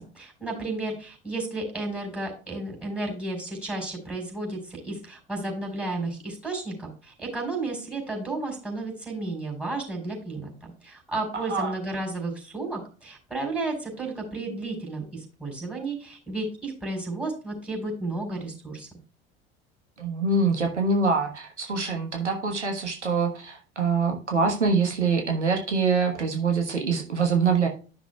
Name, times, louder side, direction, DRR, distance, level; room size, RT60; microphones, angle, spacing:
voice 1, 0.1-10.5 10.8-18.9, right 2 dB, 5° right, 0 dB, 4.7 m, -32 dB
voice 2, 11.3-11.7 20.0-27.7, right 4 dB, 80° right, 3 dB, 1.3 m, -25 dB
13.0 x 6.2 x 2.3 m, 0.36 s
figure-of-eight pair, 65°, 34 cm